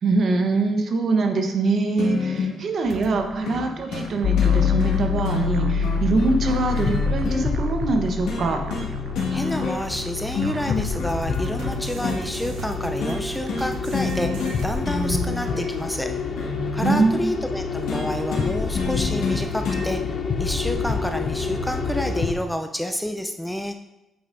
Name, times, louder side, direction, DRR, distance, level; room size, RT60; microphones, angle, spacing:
voice 1, 0.0-8.6 16.8-17.1, right 3 dB, 55° right, 4 dB, 0.9 m, -23 dB
sound 1, 2.0-2.6 3.5-3.6 3.9-4.1 4.4-7.5 8.3-8.9 9.1-10.0 10.3-12.2 13.0-13.2 13.5-13.7 13.9-14.6 14.8-17.0 17.9-19.9 20.9-21.0, left 4 dB, 85° left, 1.7 m, -28 dB
sound 2, 2.8-14.7, right 6 dB, 75° right, 0.5 m, -39 dB
sound 3, 4.2-22.3, left 5 dB, 50° left, 0.7 m, -27 dB
voice 2, 9.3-16.1 16.7-23.8, equal, 5° left, 6 dB, 0.4 m, -29 dB
8.6 x 5.4 x 2.6 m, 0.94 s
cardioid pair, 90°, 0 cm